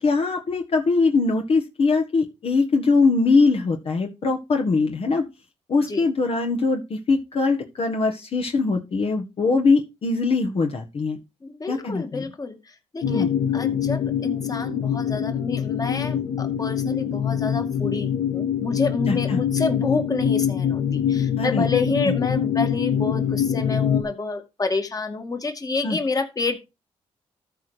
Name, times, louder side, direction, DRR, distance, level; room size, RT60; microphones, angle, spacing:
voice 1, 0.0-5.2 5.7-11.2 11.7-12.2 13.0-13.3 19.1-19.4 21.4-21.6 25.8-26.0, left 4 dB, 55° left, 3 dB, 1.6 m, -22 dB
voice 2, 11.4-12.6 12.9-13.3 13.5-26.6, left 3 dB, 30° left, 6 dB, 2.1 m, -28 dB
sound 1, 13.0-24.0, left 9 dB, 85° left, 1.3 m, -24 dB
13.5 x 4.6 x 5.1 m, 0.26 s
cardioid pair, 75°, 12 cm